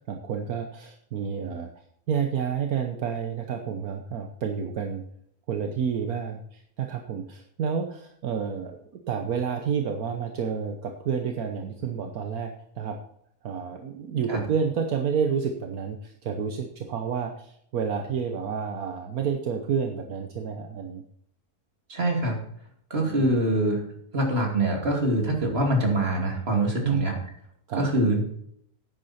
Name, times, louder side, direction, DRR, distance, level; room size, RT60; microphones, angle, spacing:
voice 1, 0.0-1.7 2.1-5.0 5.5-8.8 9.1-13.0 13.4-21.0 23.1-23.4 26.8-27.1 27.7-27.9, right 7 dB, 70° right, 4 dB, 1.4 m, -29 dB
voice 2, 21.9-22.4 22.9-23.8 24.1-27.2 27.8-28.2, right 1 dB, 40° right, 1 dB, 2.8 m, -24 dB
10.5 x 9.7 x 4.3 m, 0.69 s
omnidirectional pair, 1.6 m